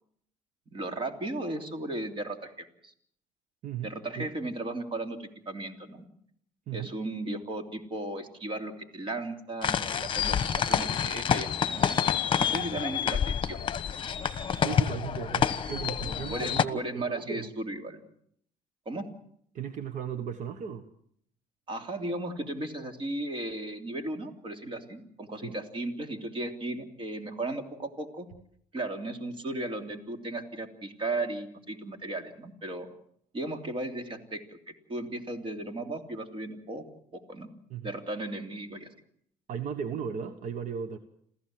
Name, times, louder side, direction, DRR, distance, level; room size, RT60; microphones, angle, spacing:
voice 1, 0.7-2.9 3.8-6.1 6.7-10.3 10.7-11.8 12.4-13.7 16.3-18.0 18.8-19.1 21.7-28.3 28.7-32.9 33.3-36.8 37.1-37.5 37.8-38.9, right 2 dB, 35° right, 6 dB, 3.1 m, -36 dB
voice 2, 3.6-4.3 6.7-6.9 12.5-12.6 14.6-17.5 19.5-20.9 25.4-25.5 37.7-37.9 39.5-41.0, right 8 dB, 60° right, 10 dB, 1.4 m, -36 dB
sound 1, 9.6-16.7, left 8 dB, 35° left, 1.2 m, -28 dB
27.5 x 15.5 x 7.7 m, 0.68 s
cardioid pair, 115°, 14 cm